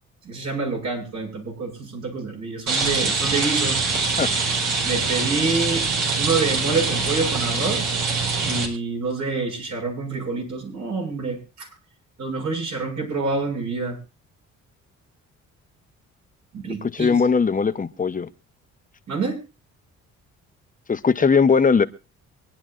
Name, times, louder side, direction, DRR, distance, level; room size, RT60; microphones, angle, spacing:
voice 1, 0.2-3.8 4.8-5.9 6.2-7.9 8.4-11.7 12.2-14.0 16.5-17.2 19.1-19.4, right 3 dB, 65° right, 2 dB, 6.6 m, -27 dB
Rain, 2.7-8.7, right 4 dB, 80° right, 4.5 m, -23 dB
voice 2, 16.8-18.3 20.9-21.8, left 5 dB, 25° left, 11 dB, 0.9 m, -19 dB
25.0 x 10.5 x 2.5 m, 0.29 s
cardioid pair, 90°, 30 cm